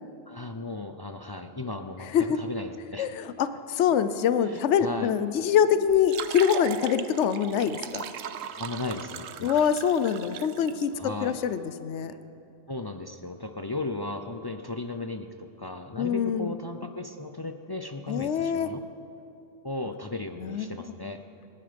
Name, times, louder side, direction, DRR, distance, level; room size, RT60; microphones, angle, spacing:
voice 1, 0.3-3.1 4.4-5.1 8.5-9.6 11.0-11.4 12.7-18.8 19.6-21.2, left 2 dB, 30° left, 6 dB, 0.5 m, -36 dB
voice 2, 3.0-8.0 9.4-12.1 16.0-16.5 18.1-18.7 20.4-20.7, left 8 dB, 70° left, 12 dB, 1.0 m, -25 dB
sound 1, 5.9-10.8, right 8 dB, 85° right, 1.1 m, -38 dB
27.5 x 10.0 x 5.2 m, 2.7 s
omnidirectional pair, 1.3 m